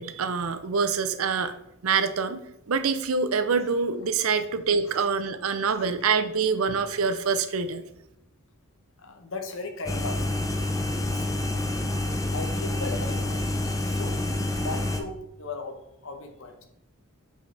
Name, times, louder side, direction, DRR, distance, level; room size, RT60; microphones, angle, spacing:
voice 1, 0.0-1.5 1.8-7.8, right 5 dB, 75° right, 11 dB, 0.6 m, -25 dB
voice 2, 4.8-5.4 9.0-10.5 10.9-11.4 12.3-13.4 13.8-14.2 14.5-16.6, left 3 dB, 60° left, 5 dB, 1.0 m, -38 dB
sound 1, 9.9-15.0, left 1 dB, 15° left, 0.5 m, -28 dB
7.9 x 4.7 x 3.4 m, 0.84 s
head